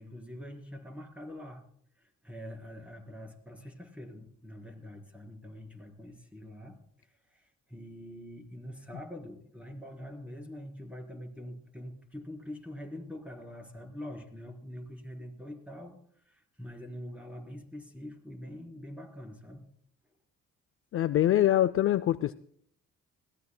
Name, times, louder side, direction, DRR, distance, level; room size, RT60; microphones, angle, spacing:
voice 1, 0.0-1.6 2.0-19.7, left 1 dB, 5° right, 2 dB, 4.1 m, -45 dB
voice 2, 20.9-22.3, left 12 dB, 45° left, 13 dB, 0.4 m, -24 dB
21.0 x 16.5 x 2.2 m, 0.66 s
cardioid pair, 90°, 30 cm